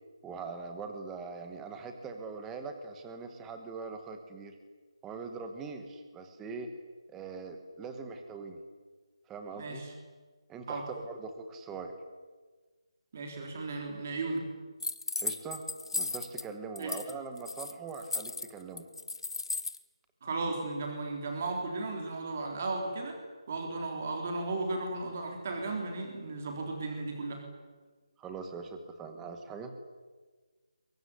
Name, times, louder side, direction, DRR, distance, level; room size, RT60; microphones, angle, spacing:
voice 1, 0.2-4.5 5.0-6.7 7.1-8.6 9.3-9.8 10.5-11.9 15.2-15.6 15.9-18.9 28.2-29.7, right 4 dB, 5° right, 6 dB, 1.1 m, -42 dB
voice 2, 13.1-14.4 16.8-16.9 20.2-23.2 23.5-27.4, right 3 dB, 20° right, 2 dB, 3.7 m, -35 dB
sound 1, 14.8-16.4 16.8-17.1 17.4-19.8, left 3 dB, 60° left, 1.9 m, -35 dB
23.0 x 23.0 x 9.9 m, 1.4 s
figure-of-eight pair, 180°, 3 cm